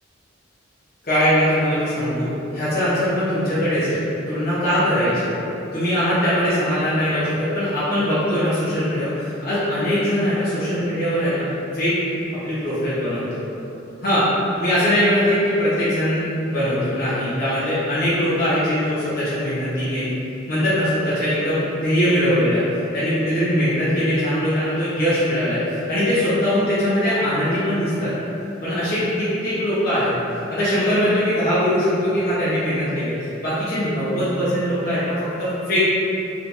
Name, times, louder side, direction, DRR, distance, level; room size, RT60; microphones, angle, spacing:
voice 1, 1.0-5.4 5.7-11.5 11.7-12.0 12.4-13.4 14.0-14.3 14.6-20.1 20.5-22.6 22.9-28.1 28.6-30.1 30.5-33.2 33.4-35.9, equal, 50° left, -13 dB, 0.9 m, -21 dB
3.3 x 3.1 x 2.6 m, 2.8 s
head